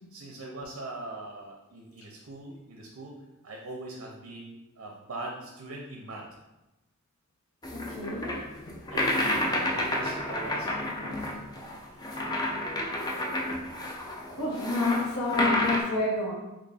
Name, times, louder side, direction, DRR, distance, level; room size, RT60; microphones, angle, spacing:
voice 1, 0.1-6.3 8.9-11.3 11.8-12.0, right 2 dB, 70° right, -1 dB, 0.5 m, -41 dB
sound 1, 7.6-15.8, left 1 dB, 20° left, 0.4 m, -30 dB
voice 2, 7.7-8.4 14.3-16.3, left 2 dB, 80° left, -4 dB, 0.7 m, -29 dB
4.0 x 3.0 x 2.3 m, 1.0 s
head